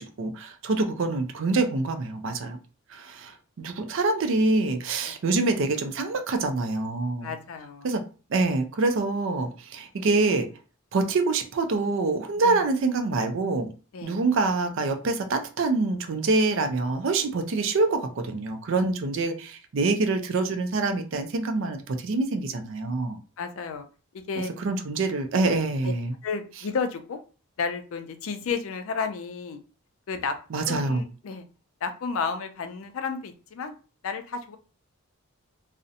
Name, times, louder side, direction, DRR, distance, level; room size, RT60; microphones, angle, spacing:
voice 1, 0.0-2.6 2.9-7.3 7.8-8.0 8.3-10.5 10.9-13.7 14.0-23.2 24.4-26.1 30.5-31.0, right 3 dB, 60° right, 7 dB, 0.4 m, -26 dB
voice 2, 7.2-7.9 10.0-10.1 12.4-12.7 13.9-14.2 23.4-23.9 24.3-24.5 25.8-25.9 26.2-27.2 27.6-29.6 30.1-30.4 30.7-31.4 31.8-33.7 34.0-34.6, left 5 dB, 65° left, 8 dB, 0.4 m, -32 dB
2.5 x 2.0 x 2.6 m, 0.35 s
head